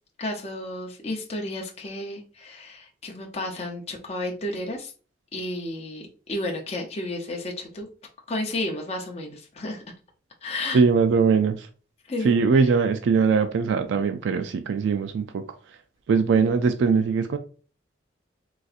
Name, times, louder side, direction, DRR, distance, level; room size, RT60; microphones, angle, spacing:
voice 1, 0.2-4.9 5.3-7.9 8.3-9.8 10.4-10.8 12.1-12.7 16.4-16.5, left 1 dB, 30° left, 0.6 m, -32 dB
voice 2, 10.7-11.7 12.2-15.4 16.1-17.4, right 5 dB, 70° right, 0.3 m, -21 dB
4.0 x 2.5 x 2.4 m
head